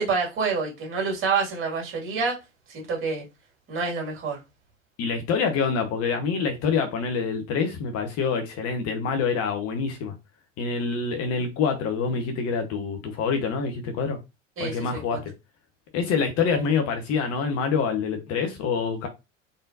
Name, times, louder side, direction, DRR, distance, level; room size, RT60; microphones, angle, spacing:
voice 1, 0.0-2.4 2.7-3.2 3.7-4.4 14.6-15.2, right 4 dB, 35° right, 2.2 m, -27 dB
voice 2, 5.0-10.1 10.6-14.2 14.6-15.3 15.9-19.1, left 5 dB, 40° left, 1.1 m, -26 dB
4.0 x 3.6 x 2.7 m
figure-of-eight pair, 80°, 38 cm